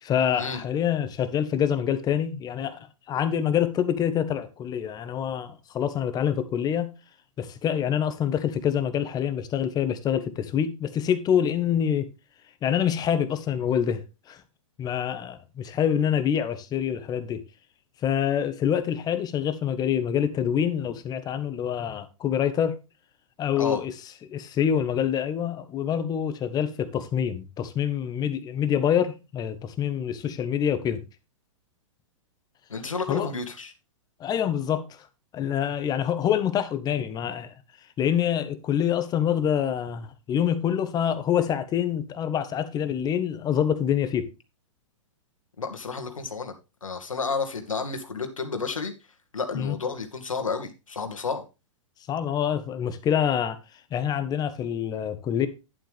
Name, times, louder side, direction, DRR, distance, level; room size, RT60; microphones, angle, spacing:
voice 1, 0.0-2.8 3.1-6.9 7.4-12.1 12.6-14.4 14.8-17.4 18.0-22.8 23.4-23.9 24.2-31.0 33.1-33.3 34.2-34.8 35.3-37.5 38.0-44.3 49.5-49.7 52.1-53.6 53.9-55.5, left 9 dB, 25° left, 1.3 m, -26 dB
voice 2, 32.7-33.7 45.6-46.5 46.8-48.9 49.3-51.4, left 4 dB, 80° left, 2.1 m, -31 dB
11.5 x 7.7 x 3.5 m
figure-of-eight pair, 110°, 17 cm